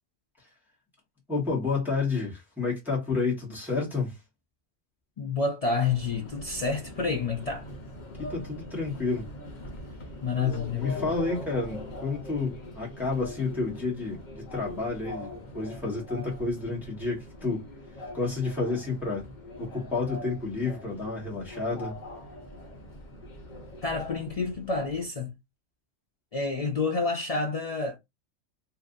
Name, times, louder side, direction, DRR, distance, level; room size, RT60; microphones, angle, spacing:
voice 1, 1.3-4.2 8.2-9.3 10.3-17.6 18.1-19.3 19.6-22.0, left 3 dB, ahead, 1.2 m, -30 dB
voice 2, 5.2-7.6 10.2-11.1 23.8-25.3 26.3-28.0, left 4 dB, 65° left, 0.3 m, -29 dB
Subway metro underground, 5.8-25.1, left 1 dB, 45° left, 0.8 m, -42 dB
2.7 x 2.5 x 3.7 m
omnidirectional pair, 1.3 m